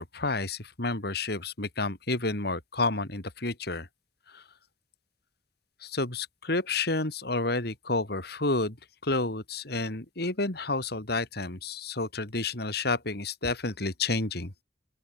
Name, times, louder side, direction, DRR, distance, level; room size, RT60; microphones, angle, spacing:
voice 1, 0.0-3.9 5.8-8.7 9.0-14.5, left 3 dB, 65° left, 3.8 m, -30 dB
open air
head